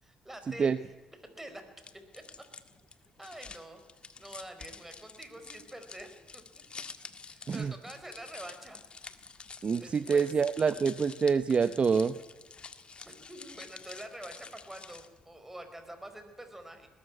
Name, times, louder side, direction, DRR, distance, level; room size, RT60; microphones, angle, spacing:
voice 1, 0.0-0.7 1.2-1.6 2.1-2.2 3.2-3.8 4.2-6.8 7.2-8.8 9.8-10.3 13.0-16.9, right 1 dB, 10° right, 8 dB, 4.8 m, -46 dB
sound 1, 1.8-15.2, left 5 dB, 40° left, 1.7 m, -49 dB
voice 2, 9.6-12.2, right 5 dB, 40° right, 13 dB, 0.8 m, -26 dB
20.5 x 13.5 x 9.7 m, 1.2 s
supercardioid pair, 70°, 3 cm